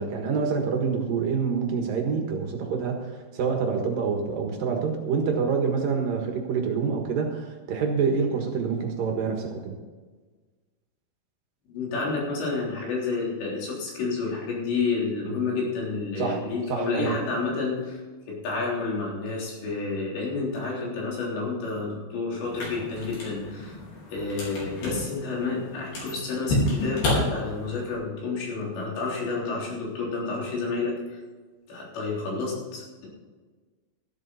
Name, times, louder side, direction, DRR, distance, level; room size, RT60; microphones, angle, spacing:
voice 1, 0.0-9.8 16.2-16.4 16.7-17.2, right 5 dB, 60° right, 2 dB, 2.9 m, -27 dB
voice 2, 11.7-18.0 18.3-23.8 24.1-31.2 31.7-33.1, left 4 dB, 85° left, -3 dB, 5.9 m, -30 dB
sound 1, 22.4-28.0, left 1 dB, 60° left, 6.1 m, -30 dB
14.0 x 12.0 x 4.2 m, 1.4 s
omnidirectional pair, 5.0 m